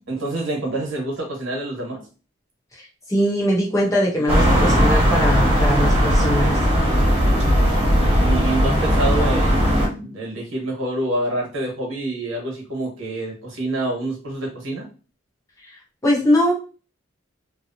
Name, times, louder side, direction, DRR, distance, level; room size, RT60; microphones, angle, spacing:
voice 1, 0.0-2.0 8.0-14.9, right 2 dB, 85° right, -1 dB, 1.2 m, -27 dB
voice 2, 3.1-6.6 16.0-16.5, equal, 15° left, -3 dB, 0.8 m, -21 dB
sound 1, 4.3-9.9, equal, 25° right, 1.2 m, -17 dB
2.9 x 2.0 x 2.6 m, 0.35 s
head